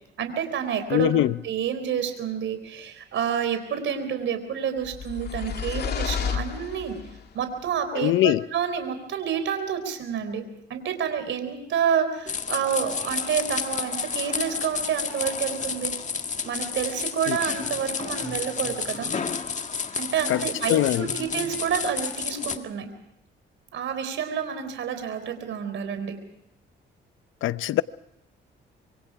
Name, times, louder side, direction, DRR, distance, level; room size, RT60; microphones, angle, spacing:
voice 1, 0.2-1.1 1.4-7.0 7.3-10.4 10.7-15.9 16.4-19.1 19.9-22.9 23.7-26.2, right 8 dB, 70° right, 4.2 m, -29 dB
voice 2, 0.9-1.3 7.9-8.4 17.3-17.4 20.3-20.4 20.7-21.1 27.4-27.8, left 14 dB, 85° left, 0.8 m, -22 dB
sound 1, 4.8-7.2, left 7 dB, 55° left, 2.7 m, -31 dB
sound 2, 12.3-22.6, left 5 dB, 35° left, 1.8 m, -31 dB
26.0 x 24.0 x 4.8 m
cardioid pair, 90°, 20 cm